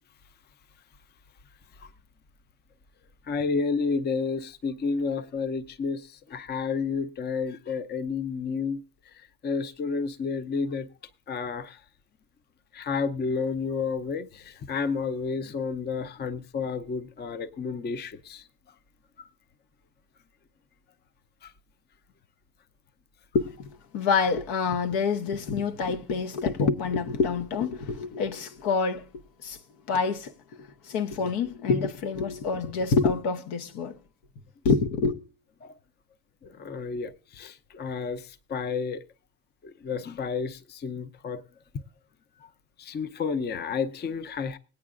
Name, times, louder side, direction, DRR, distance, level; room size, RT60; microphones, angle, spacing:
voice 1, 3.3-8.8 9.1-10.9 11.3-11.8 12.7-18.4 19.2-19.3 21.4-21.5 35.6-35.8 36.4-39.0 39.6-41.4 42.4-42.5 42.8-44.6, left 5 dB, 25° left, 0.6 m, -31 dB
voice 2, 23.3-29.6 29.9-34.0 34.6-35.2, left 5 dB, 70° left, 1.1 m, -27 dB
20.5 x 8.6 x 2.5 m
supercardioid pair, 75°, 38 cm